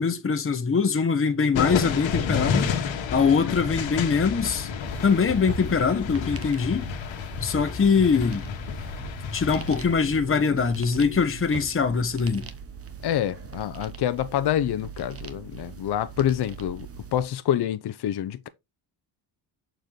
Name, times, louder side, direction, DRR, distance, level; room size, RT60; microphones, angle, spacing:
voice 1, 0.0-4.7 5.0-6.9 7.4-8.5 9.3-12.5, left 5 dB, 30° left, 1.1 m, -23 dB
sound 1, 1.5-10.0, left 6 dB, 80° left, 1.5 m, -30 dB
sound 2, 4.8-17.2, right 6 dB, 30° right, 1.1 m, -41 dB
voice 2, 13.0-18.5, left 11 dB, 60° left, 0.8 m, -27 dB
6.8 x 4.5 x 3.8 m
cardioid pair, 115°, 45 cm